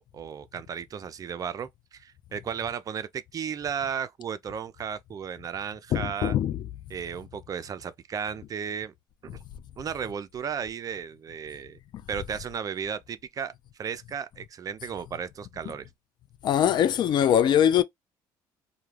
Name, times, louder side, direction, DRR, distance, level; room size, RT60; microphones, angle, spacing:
voice 1, 0.0-6.4 6.9-8.9 9.2-9.4 9.8-11.8 12.1-13.5 13.8-15.9, right 7 dB, 40° right, 0.4 m, -34 dB
voice 2, 5.9-6.6 11.9-12.0 16.4-17.8, left 10 dB, 55° left, 0.3 m, -22 dB
2.3 x 2.1 x 3.1 m
supercardioid pair, 80°, 9 cm